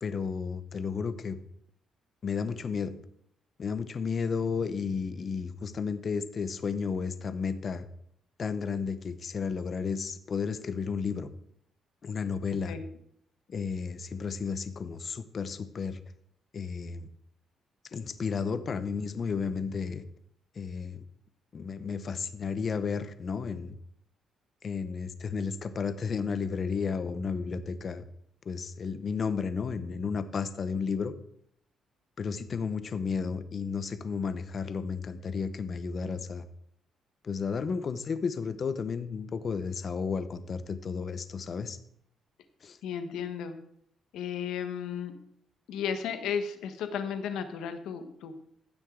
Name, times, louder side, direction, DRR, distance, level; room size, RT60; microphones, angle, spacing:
voice 1, 0.0-1.4 2.2-3.0 3.6-7.9 8.4-11.3 12.0-12.7 13.5-16.0 16.5-17.1 17.9-20.0 20.6-21.0 21.5-23.8 24.6-28.0 28.5-31.1 32.2-36.4 37.2-41.8 42.6-42.8, left 5 dB, 45° left, 11 dB, 0.9 m, -33 dB
voice 2, 42.8-43.6 44.1-45.1 45.7-48.3, left 7 dB, 85° left, 8 dB, 1.2 m, -34 dB
15.5 x 6.4 x 3.9 m, 0.71 s
cardioid pair, 90°, 0 cm